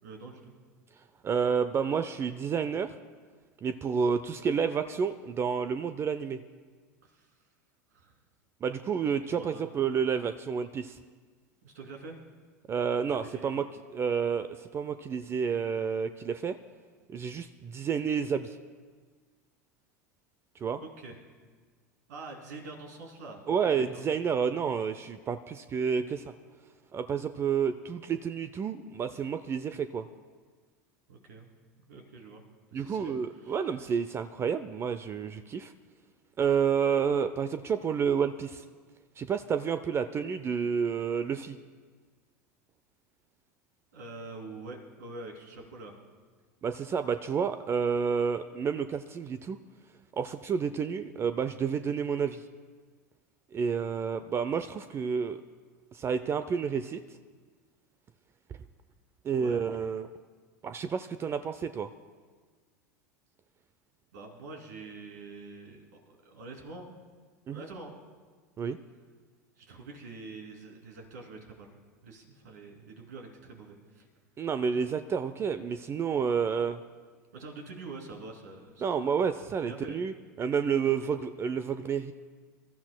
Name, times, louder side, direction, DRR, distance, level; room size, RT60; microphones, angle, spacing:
voice 1, 0.0-0.5 7.0-7.3 7.9-8.1 9.3-9.6 11.6-12.2 13.1-13.7 20.8-21.2 22.1-24.0 31.1-31.5 31.8-32.4 32.7-33.6 43.9-46.0 59.3-59.6 64.1-66.9 67.5-68.0 69.5-71.7 72.0-74.1 77.3-78.8 79.6-80.0, right 3 dB, 75° right, 1 dB, 2.7 m, -45 dB
voice 2, 1.2-2.9 3.6-6.4 8.6-11.0 12.7-13.6 13.9-16.6 17.1-18.6 20.6-20.8 23.5-26.2 26.9-30.1 32.7-35.7 36.4-38.6 39.2-41.6 46.6-49.6 50.1-52.4 53.5-55.4 55.9-57.0 59.2-60.1 60.6-61.9 67.5-67.6 68.6-68.8 74.4-76.8 78.8-82.1, right 6 dB, 30° right, 11 dB, 0.5 m, -30 dB
25.5 x 13.0 x 2.2 m, 1.5 s
hypercardioid pair, 90°, 9 cm